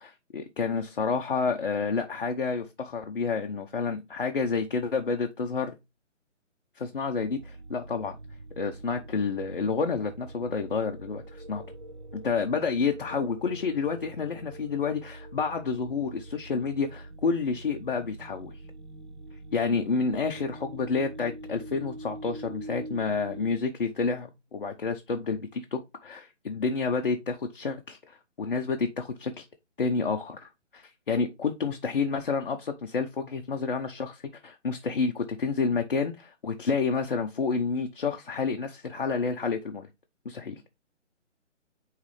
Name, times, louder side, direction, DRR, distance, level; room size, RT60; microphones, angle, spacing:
voice 1, 0.0-5.7 6.8-8.2 8.6-11.2 11.5-11.6 12.1-18.5 19.5-29.5 29.8-39.9 40.2-40.6, left 5 dB, 45° left, 0.8 m, -29 dB
sound 1, 7.1-23.5, right 1 dB, 40° right, 0.4 m, -44 dB
9.3 x 3.3 x 3.2 m
hypercardioid pair, 165°, 37 cm